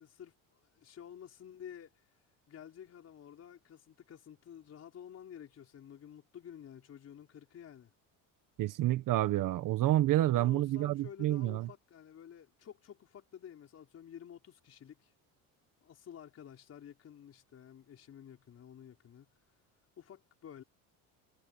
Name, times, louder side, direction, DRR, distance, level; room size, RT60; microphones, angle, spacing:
voice 1, 0.0-2.1 2.5-7.9 10.3-15.1 15.8-19.6 20.0-20.6, left 9 dB, 40° left, 5.2 m, -51 dB
voice 2, 8.6-11.7, right 14 dB, 60° right, 1.4 m, -29 dB
cardioid pair, 130°, 37 cm